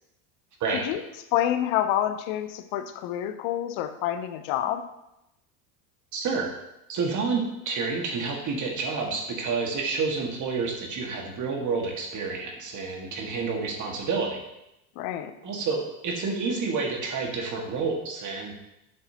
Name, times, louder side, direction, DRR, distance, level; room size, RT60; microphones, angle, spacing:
voice 1, 1.3-4.8 15.0-15.3, left 11 dB, 65° left, 10 dB, 0.8 m, -27 dB
voice 2, 6.1-6.5 6.9-14.4 15.4-18.5, right 4 dB, 40° right, 1 dB, 1.8 m, -29 dB
8.6 x 6.2 x 2.9 m, 0.88 s
supercardioid pair, 105°, 45 cm